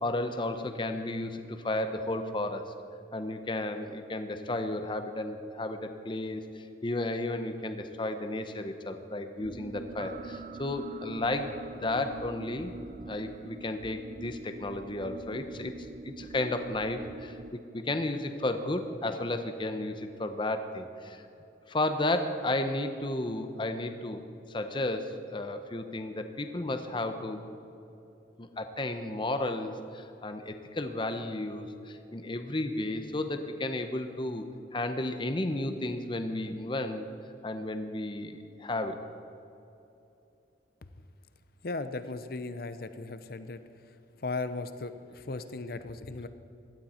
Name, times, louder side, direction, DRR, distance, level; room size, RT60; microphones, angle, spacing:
voice 1, 0.0-2.7 3.1-12.7 13.1-15.7 16.0-21.2 21.7-24.2 24.5-27.4 28.4-34.5 34.7-37.0 37.4-39.0, left 2 dB, 25° left, 8 dB, 0.7 m, -33 dB
sound 1, 9.4-17.5, right 3 dB, 45° right, 0.4 m, -44 dB
voice 2, 41.6-43.6 44.2-46.3, left 3 dB, 55° left, 11 dB, 0.7 m, -37 dB
16.5 x 12.0 x 4.3 m, 2.8 s
head